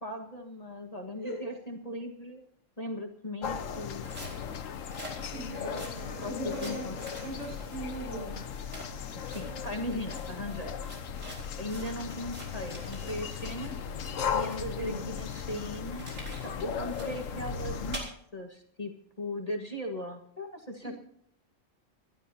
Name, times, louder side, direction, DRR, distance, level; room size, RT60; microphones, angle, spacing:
voice 1, 0.0-2.4 2.8-4.1 5.7-5.8 6.2-7.0 9.1-10.7 11.6-16.1 16.4-18.9 19.2-20.9, left 1 dB, 30° left, 2 dB, 1.6 m, -38 dB
sound 1, 3.4-18.0, left 7 dB, 80° left, 1.3 m, -37 dB
sound 2, 3.9-13.7 14.0-18.0, right 1 dB, 90° right, 5.0 m, -48 dB
voice 2, 5.3-8.4 14.8-15.1 20.8-21.0, right 1 dB, 60° right, -1 dB, 6.5 m, -39 dB
27.0 x 12.0 x 2.8 m, 0.69 s
omnidirectional pair, 1.3 m